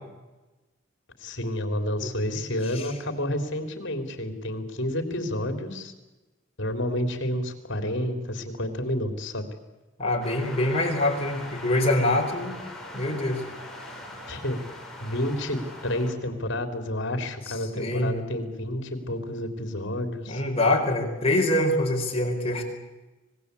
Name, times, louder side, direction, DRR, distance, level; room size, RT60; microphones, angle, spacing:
voice 1, 1.2-5.9 6.6-9.5 14.3-14.6 15.0-20.4, left 1 dB, 65° left, 7 dB, 3.5 m, -30 dB
voice 2, 2.0-2.4 2.7-2.9 10.0-12.6 12.9-13.4 17.7-18.1 20.3-22.6, left 1 dB, 30° left, 1 dB, 4.8 m, -25 dB
sound 1, 10.2-16.1, left 1 dB, ahead, 5.2 m, -41 dB
25.5 x 19.5 x 8.4 m, 1.1 s
head